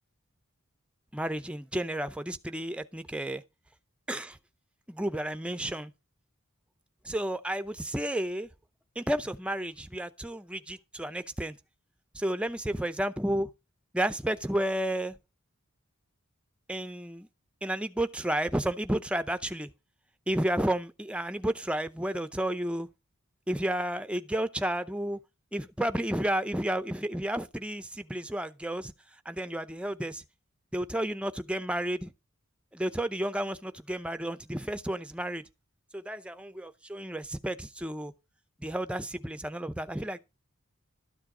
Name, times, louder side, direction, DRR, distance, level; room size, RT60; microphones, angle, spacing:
voice 1, 1.1-3.4 4.1-4.4 4.9-5.9 7.0-8.5 9.0-11.6 12.1-13.5 13.9-15.1 16.7-17.3 17.6-19.7 20.3-22.9 23.5-25.2 25.5-28.9 29.3-30.2 30.7-32.1 32.7-35.4 35.9-38.1 38.6-40.2, right 1 dB, 5° right, 0.6 m, -32 dB
13.0 x 7.4 x 4.9 m
head